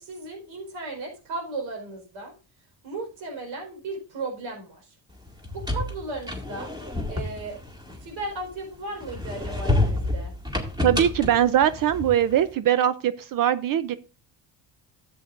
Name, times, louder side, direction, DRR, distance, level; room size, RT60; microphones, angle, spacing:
voice 1, 0.0-2.3 2.8-5.0 5.5-6.7 7.1-7.6 8.0-10.3, right 2 dB, 80° right, 3 dB, 4.5 m, -35 dB
sound 1, 5.3-8.5 9.0-12.4, left 2 dB, 10° right, 2.2 m, -29 dB
voice 2, 10.8-13.9, right 10 dB, 50° right, 14 dB, 0.5 m, -21 dB
12.5 x 8.0 x 2.5 m, 0.33 s
cardioid pair, 115°, 45 cm